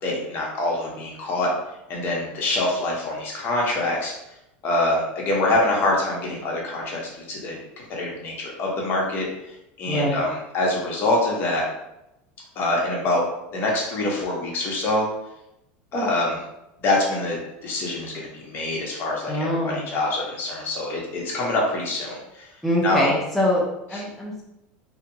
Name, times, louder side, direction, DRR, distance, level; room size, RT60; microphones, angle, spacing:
voice 1, 0.0-1.5 1.9-4.1 4.6-7.6 7.9-9.3 9.8-11.6 12.6-13.2 13.5-15.1 15.9-16.4 16.8-22.4 22.8-23.1, left 2 dB, 40° left, -2 dB, 0.9 m, -25 dB
voice 2, 9.9-10.2 19.3-19.9 22.6-24.4, equal, ahead, -5 dB, 0.5 m, -24 dB
2.7 x 2.3 x 2.7 m, 0.86 s
supercardioid pair, 120°, 5 cm